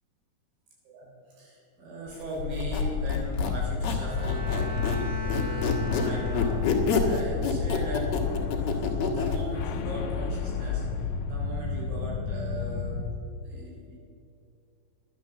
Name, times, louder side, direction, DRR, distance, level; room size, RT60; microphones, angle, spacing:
voice 1, 0.9-8.1 8.4-13.0 13.4-14.0, right 1 dB, 80° right, -4 dB, 5.8 m, -39 dB
sound 1, 2.4-13.0, left 5 dB, 80° left, 1.8 m, -31 dB
Squeak, 2.5-5.0 5.3-9.4, left 5 dB, 55° left, 2.2 m, -28 dB
Bowed string instrument, 3.9-7.1, left 2 dB, 55° right, 2.4 m, -39 dB
11.5 x 10.5 x 7.1 m, 2.6 s
omnidirectional pair, 4.5 m